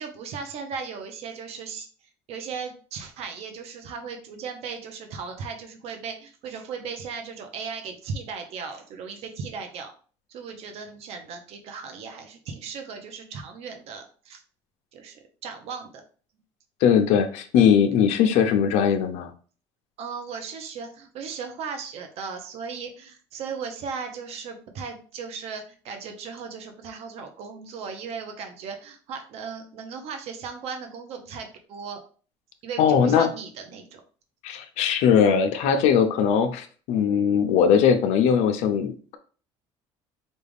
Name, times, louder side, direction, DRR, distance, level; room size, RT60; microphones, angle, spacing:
voice 1, 0.0-1.9 2.3-9.9 10.3-14.4 14.9-16.0 20.0-32.0 32.6-34.0, right 5 dB, 65° right, 5 dB, 0.8 m, -37 dB
voice 2, 16.8-19.3 32.8-33.3 34.4-39.2, left 7 dB, 80° left, 7 dB, 0.7 m, -20 dB
5.2 x 2.4 x 3.4 m, 0.40 s
cardioid pair, 130°, 12 cm